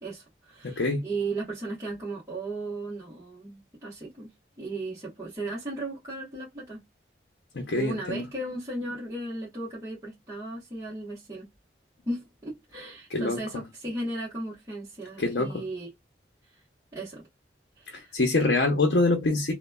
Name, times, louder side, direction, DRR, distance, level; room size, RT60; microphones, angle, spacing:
voice 1, 0.0-4.3 4.6-6.8 7.8-11.5 12.1-15.9 16.9-17.2 17.8-18.1, right 2 dB, 20° right, 1.1 m, -36 dB
voice 2, 0.6-1.0 7.5-8.3 13.1-13.4 15.2-15.5 17.9-19.5, left 2 dB, 80° left, 0.7 m, -25 dB
3.0 x 2.2 x 2.2 m
head